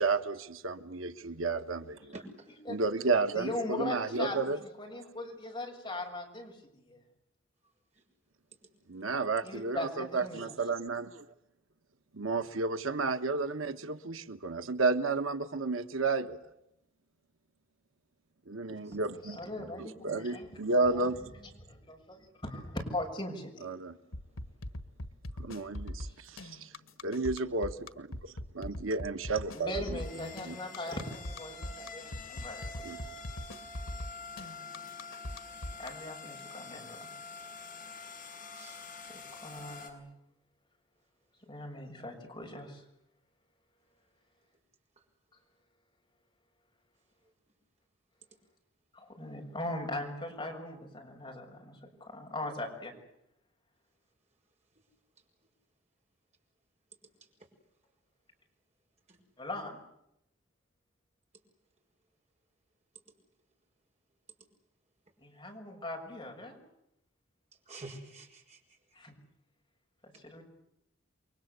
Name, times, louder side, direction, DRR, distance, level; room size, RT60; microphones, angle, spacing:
voice 1, 0.0-2.2 2.7-4.6 8.9-11.2 12.1-16.4 18.5-21.2 23.6-24.0 25.4-26.7 27.0-30.5 32.8-33.0, right 3 dB, 85° right, 9 dB, 1.3 m, -32 dB
voice 2, 2.1-2.5 18.9-19.0 38.5-38.8 59.1-59.2 67.7-68.6, right 2 dB, 35° right, 2 dB, 6.2 m, -47 dB
voice 3, 3.3-4.4 4.8-7.0 9.4-10.5 19.2-21.3 21.7-23.7 26.0-26.1 29.5-32.8 35.8-37.1 39.3-40.0 41.5-42.8 48.9-52.9 59.4-59.8 65.2-66.6 68.9-69.1 70.0-70.4, left 1 dB, 20° left, 1 dB, 6.7 m, -40 dB
sound 1, 24.1-35.9, left 1 dB, 90° left, 1.6 m, -40 dB
sound 2, 29.7-39.9, left 4 dB, 40° left, 6.4 m, -46 dB
29.5 x 23.5 x 8.2 m, 0.83 s
head